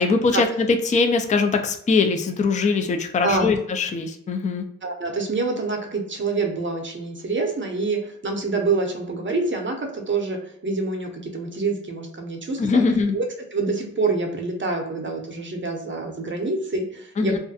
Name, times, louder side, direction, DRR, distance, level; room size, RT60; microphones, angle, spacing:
voice 1, 0.0-4.7 12.6-13.1 17.2-17.4, left 4 dB, 25° left, 6 dB, 0.4 m, -21 dB
voice 2, 3.2-3.5 4.8-12.8 13.1-17.4, right 3 dB, 35° right, 3 dB, 0.7 m, -26 dB
2.4 x 2.2 x 2.6 m, 0.72 s
cardioid pair, 60°, 34 cm